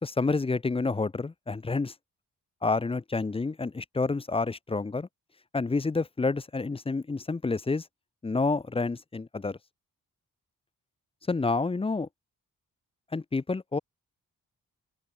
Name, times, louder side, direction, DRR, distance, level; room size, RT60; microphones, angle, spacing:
voice 1, 0.0-1.9 2.6-5.1 5.5-7.8 8.2-9.6 11.3-12.1 13.1-13.8, left 3 dB, 15° left, 0.5 m, -29 dB
open air
wide cardioid pair, 160°, 34 cm